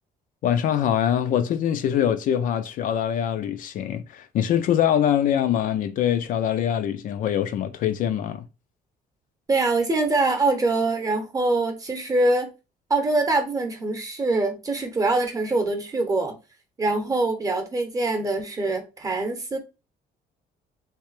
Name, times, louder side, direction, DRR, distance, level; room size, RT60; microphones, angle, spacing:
voice 1, 0.4-8.4, left 10 dB, 55° left, 0.4 m, -23 dB
voice 2, 9.5-12.5 12.9-16.4 16.8-19.6, right 2 dB, 20° right, 0.8 m, -24 dB
3.3 x 2.8 x 3.2 m
cardioid pair, 155°, 17 cm